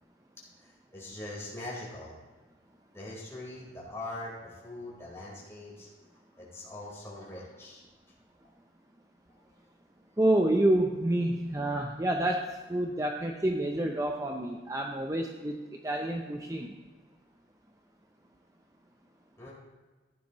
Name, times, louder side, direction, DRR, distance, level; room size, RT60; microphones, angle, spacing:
voice 1, 0.6-2.2 2.9-5.9 6.4-7.8 9.3-9.6 19.4-19.5, left 2 dB, 15° left, -5 dB, 4.1 m, -42 dB
voice 2, 10.2-15.6 15.8-16.7, right 1 dB, 20° right, 2 dB, 0.6 m, -28 dB
15.0 x 10.0 x 3.0 m, 1.3 s
head